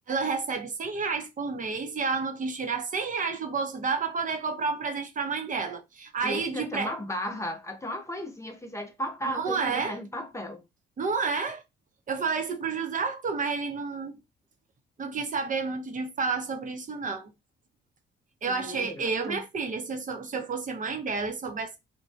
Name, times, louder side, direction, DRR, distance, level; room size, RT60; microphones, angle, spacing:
voice 1, 0.1-6.9 9.3-10.0 11.0-11.6 12.1-14.2 15.0-17.3 18.4-21.8, right 4 dB, 40° right, 0.7 m, -30 dB
voice 2, 6.2-10.6 18.5-19.4, equal, 15° left, 0.6 m, -35 dB
3.1 x 2.2 x 2.6 m
cardioid pair, 90°, 20 cm